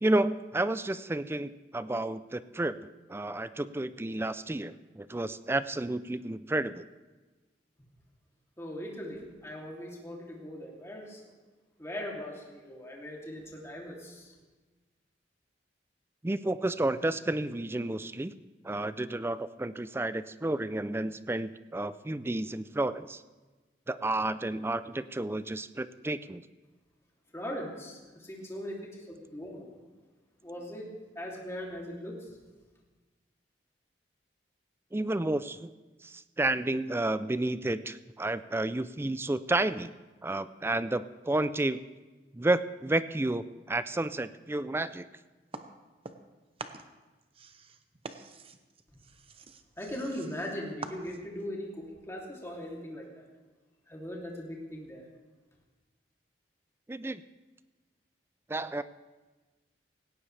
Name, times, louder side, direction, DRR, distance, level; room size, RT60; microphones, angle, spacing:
voice 1, 0.0-6.8 16.2-18.3 18.6-23.2 23.9-26.4 34.9-35.7 36.0-39.9 40.2-41.8 42.3-45.1 56.9-57.2 58.5-58.8, right 2 dB, 15° right, 14 dB, 0.4 m, -31 dB
voice 2, 8.6-11.2 11.8-14.3 27.3-29.7 30.4-32.3 49.8-53.3 53.9-55.0, equal, 15° left, -2 dB, 2.9 m, -40 dB
sound 1, 45.5-46.3 46.6-51.4, right 4 dB, 35° right, 0.8 m, -46 dB
18.0 x 17.0 x 3.4 m, 1.2 s
head